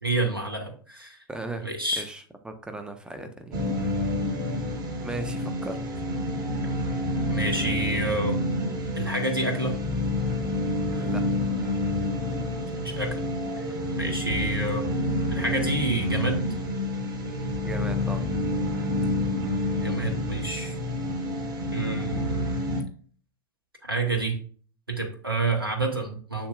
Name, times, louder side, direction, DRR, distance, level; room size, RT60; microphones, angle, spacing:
voice 1, 0.0-1.2 1.6-2.0 7.3-8.4 8.9-9.7 12.8-13.2 13.6-13.7 14.0-14.8 15.3-16.4 19.8-20.7 21.7-22.4 23.8-24.3 24.9-26.5, right 2 dB, 85° right, 3 dB, 1.4 m, -28 dB
voice 2, 1.3-1.7 2.0-3.6 5.0-5.8 10.9-11.2 17.6-18.3, right 2 dB, 5° right, 7 dB, 1.2 m, -37 dB
sound 1, 3.5-22.8, left 1 dB, 35° right, 3.4 m, -28 dB
7.2 x 7.1 x 2.4 m, 0.43 s
figure-of-eight pair, 85°, 12 cm